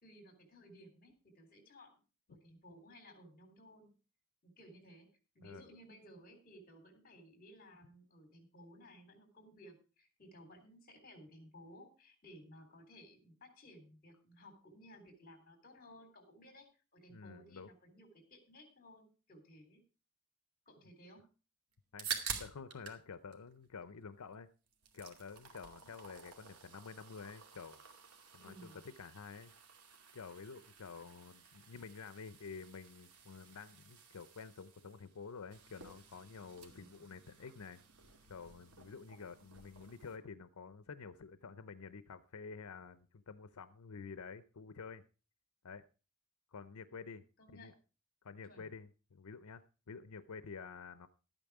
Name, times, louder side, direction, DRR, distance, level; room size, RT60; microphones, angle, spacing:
voice 1, 0.0-2.0 2.3-3.9 4.4-5.1 5.4-19.8 20.7-21.3 25.8-25.9 28.4-28.8 36.7-37.0 47.4-47.8 48.5-48.7, equal, 40° left, 7 dB, 3.5 m, -58 dB
voice 2, 17.1-17.7 21.9-22.1 22.4-24.5 24.9-27.8 28.3-28.7 29.0-29.5 30.1-37.8 38.3-45.0 45.6-45.8 46.5-47.2 47.5-47.7 48.2-51.1, left 5 dB, 85° left, 13 dB, 0.6 m, -50 dB
sound 1, 21.7-23.0 23.3-24.3 24.7-40.2, right 6 dB, 90° right, 2.4 m, -50 dB
12.5 x 9.0 x 4.8 m, 0.34 s
head